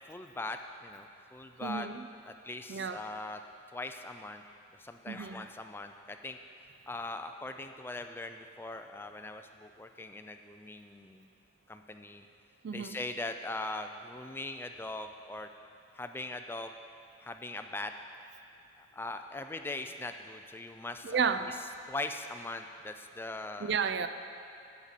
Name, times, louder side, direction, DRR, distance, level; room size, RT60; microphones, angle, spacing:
voice 1, 0.1-1.9 2.2-3.4 3.7-4.4 4.8-6.4 6.9-11.3 11.7-12.3 12.7-15.5 15.9-16.7 17.2-17.9 18.8-21.2 21.5-23.8, left 2 dB, 10° left, 6 dB, 0.4 m, -41 dB
voice 2, 1.6-2.1 2.7-3.0 5.1-5.5 12.6-13.0 21.0-21.6 23.6-24.1, right 6 dB, 60° right, 10 dB, 0.4 m, -32 dB
11.0 x 8.5 x 4.1 m, 2.5 s
head